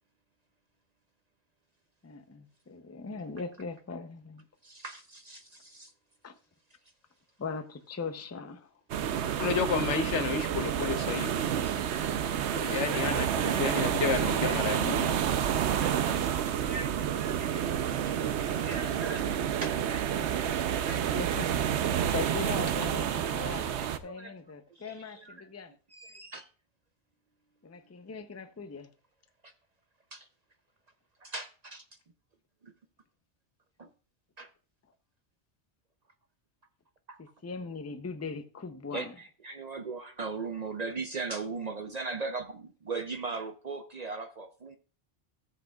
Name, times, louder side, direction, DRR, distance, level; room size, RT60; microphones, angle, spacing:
voice 1, 2.0-4.4 6.2-6.3 7.4-8.7 21.1-21.6 22.1-23.1 23.3-23.8 24.0-25.7 27.6-28.9 37.4-39.1, left 4 dB, 20° left, 0.4 m, -39 dB
voice 2, 4.6-5.9 11.1-11.2 11.6-13.6 14.0-21.0 21.3-21.5 22.1-22.9 23.3-24.3 24.7-25.5 25.9-26.5 29.4-29.5 30.1-30.3 31.2-31.8 32.6-32.7 33.8-33.9 34.4-34.5 37.1-37.2 38.9-44.8, right 4 dB, 45° right, 0.6 m, -41 dB
sound 1, 8.9-24.0, right 9 dB, 75° right, 0.9 m, -29 dB
voice 3, 9.4-11.4 12.5-15.2, left 6 dB, 80° left, 1.1 m, -31 dB
14.0 x 7.6 x 2.3 m
omnidirectional pair, 1.2 m